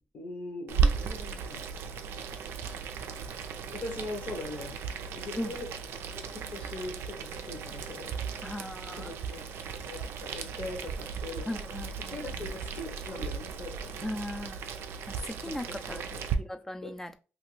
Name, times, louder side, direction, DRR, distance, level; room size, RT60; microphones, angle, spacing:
voice 1, 0.1-1.7 3.7-4.8 5.1-5.7 6.2-8.2 8.9-9.4 9.8-14.0 15.5-16.2 16.8-16.9, left 2 dB, 55° left, 0.9 m, -41 dB
Boiling, 0.7-16.3, right 6 dB, 90° right, 0.4 m, -35 dB
voice 2, 8.4-9.3 11.5-12.4 14.0-14.6 15.1-16.1 16.4-17.2, left 1 dB, 10° left, 0.4 m, -38 dB
2.8 x 2.5 x 3.1 m
cardioid pair, 95°, 4 cm